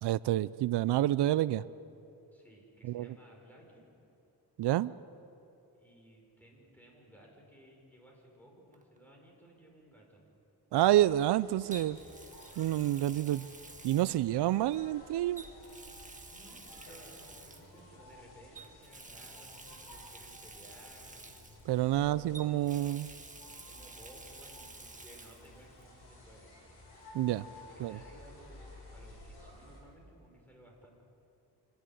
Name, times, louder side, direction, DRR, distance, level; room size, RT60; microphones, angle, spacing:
voice 1, 0.0-1.6 2.8-3.1 4.6-4.9 10.7-12.0 12.6-13.5 13.8-15.4 21.7-23.1 27.1-27.5 27.8-28.0, right 13 dB, 90° right, 18 dB, 0.5 m, -28 dB
voice 2, 2.3-3.8 5.8-10.2 16.3-21.2 22.0-22.5 23.7-26.5 27.5-31.0, right 1 dB, 5° left, -1 dB, 6.1 m, -58 dB
Water tap faucet, 8.7-9.0 11.7-14.8 15.3-17.8 18.5-22.0 22.3-25.5 25.8-25.9 27.5-27.6, right 3 dB, 20° right, 1.5 m, -51 dB
sound 1, 10.7-29.8, left 2 dB, 85° left, 6.5 m, -54 dB
26.5 x 11.5 x 10.0 m, 2.9 s
cardioid pair, 90°, 39 cm